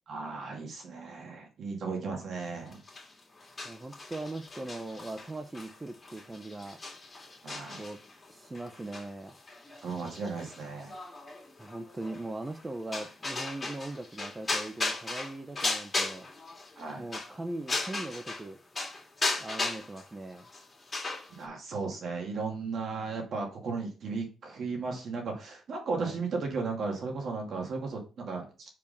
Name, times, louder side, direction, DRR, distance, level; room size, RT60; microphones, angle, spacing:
voice 1, 0.1-2.8 7.4-7.8 9.8-10.9 16.8-17.0 21.3-28.7, right 4 dB, 60° right, 1 dB, 2.5 m, -35 dB
sound 1, 2.7-18.5 18.8-21.4, left 3 dB, 30° left, 2.4 m, -37 dB
voice 2, 3.6-6.8 7.8-8.0 8.3-9.3 11.6-16.3 17.0-18.6 19.4-20.5 26.0-26.2, right 2 dB, 20° right, 6 dB, 0.8 m, -40 dB
4.9 x 4.6 x 5.4 m, 0.34 s
cardioid pair, 90°, 0 cm